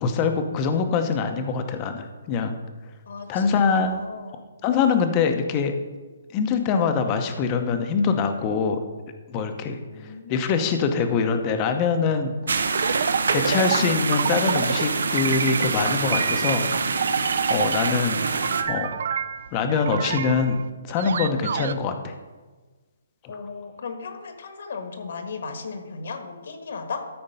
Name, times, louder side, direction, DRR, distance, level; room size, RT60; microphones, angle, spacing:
voice 1, 0.0-2.6 3.3-4.0 4.6-5.7 6.3-8.8 9.3-12.3 13.3-16.6 17.5-18.2 18.6-18.9 19.5-20.6 20.9-22.1 23.2-23.4, left 5 dB, 20° left, 7 dB, 0.7 m, -24 dB
voice 2, 3.1-3.4 3.8-4.4 9.9-10.9 23.3-27.1, left 4 dB, 60° left, 7 dB, 1.3 m, -36 dB
sound 1, 12.5-18.6, right 4 dB, 80° right, 0.8 m, -25 dB
sound 2, 12.7-14.9 15.2-15.8 16.1-18.0 18.3-21.7, right 7 dB, 55° right, 0.4 m, -28 dB
13.0 x 4.3 x 5.6 m, 1.3 s
hypercardioid pair, 170°, 0 cm